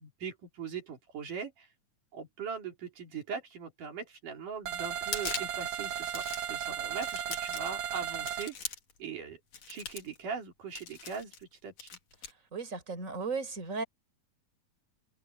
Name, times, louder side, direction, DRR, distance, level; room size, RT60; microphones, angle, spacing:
voice 1, 0.0-1.7 2.1-8.7 9.0-9.4 9.7-11.9, right 6 dB, 90° right, 5.3 m, -40 dB
sound 1, 4.6-8.5, right 9 dB, 60° right, 2.2 m, -35 dB
sound 2, 5.0-5.6 6.0-6.5 7.0-7.8 8.3-9.0 9.5-10.2 10.8-11.4 11.8-12.3, left 6 dB, 60° left, 3.7 m, -40 dB
voice 2, 12.5-13.8, right 4 dB, 25° right, 4.7 m, -35 dB
open air
omnidirectional pair, 3.6 m